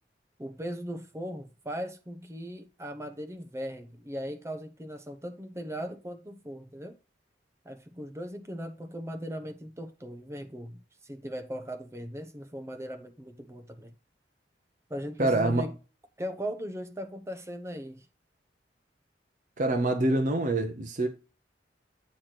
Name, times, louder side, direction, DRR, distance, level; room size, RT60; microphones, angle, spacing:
voice 1, 0.4-6.9 7.6-13.9 14.9-15.7 16.2-18.0, equal, 15° right, 0.9 m, -38 dB
voice 2, 15.2-15.7 19.6-21.1, right 2 dB, 45° right, 0.8 m, -25 dB
8.5 x 3.2 x 5.8 m
head